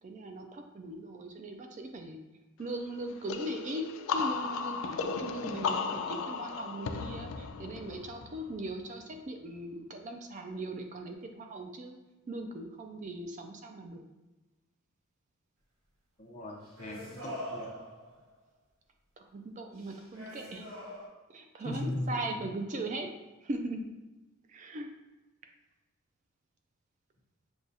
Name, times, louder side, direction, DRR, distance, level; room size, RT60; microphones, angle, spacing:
voice 1, 0.0-2.2 2.6-12.0 12.3-14.1 19.2-20.7 21.3-23.1 23.4-23.8 24.5-24.9, right 1 dB, 35° right, 4 dB, 0.3 m, -39 dB
sound 1, 3.3-8.8, left 5 dB, 75° left, 0.3 m, -35 dB
voice 2, 16.2-17.8 21.6-22.2, left 1 dB, 35° left, 0 dB, 0.6 m, -38 dB
sound 2, 16.5-18.3 19.8-21.1, equal, 85° right, 1.0 m, -44 dB
6.2 x 2.3 x 2.6 m, 1.1 s
head